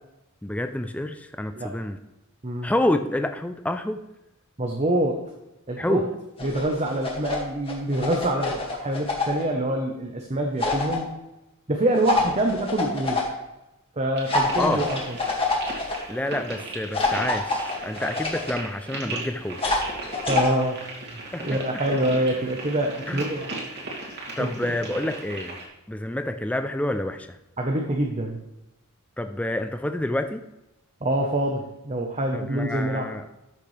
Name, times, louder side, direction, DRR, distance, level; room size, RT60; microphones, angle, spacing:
voice 1, 0.4-2.0 2.6-4.0 5.8-6.0 14.6-14.9 16.1-19.6 21.3-21.8 23.1-23.2 24.4-25.6 25.9-27.4 29.2-30.4 32.3-33.2, left 1 dB, 5° left, 8 dB, 0.4 m, -28 dB
voice 2, 4.6-5.2 5.7-6.0 6.4-11.1 11.7-13.3 14.0-15.0 20.3-23.5 24.4-24.5 27.6-28.4 31.0-33.1, right 1 dB, 30° right, 1 dB, 1.0 m, -26 dB
sound 1, 6.4-7.4 7.7-9.4 10.6-11.0 12.0-13.2 14.3-15.9 16.9-18.5 19.6-20.5, left 3 dB, 25° left, 2.0 m, -26 dB
sound 2, 14.2-25.7, right 2 dB, 50° right, 2.7 m, -37 dB
13.0 x 6.8 x 3.3 m, 0.93 s
head